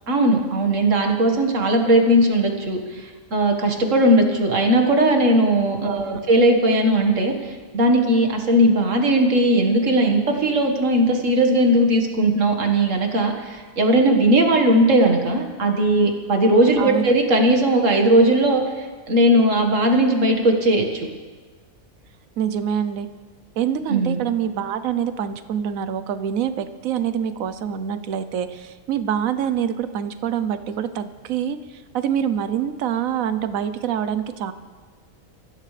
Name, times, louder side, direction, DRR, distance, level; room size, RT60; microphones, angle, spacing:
voice 1, 0.1-7.3 7.7-21.1 23.9-24.2, right 1 dB, 70° right, 3 dB, 2.0 m, -18 dB
voice 2, 5.8-6.2 16.8-17.0 22.4-23.1 23.6-34.5, right 9 dB, 85° right, 11 dB, 1.2 m, -25 dB
24.5 x 15.0 x 3.3 m, 1.5 s
omnidirectional pair, 1.4 m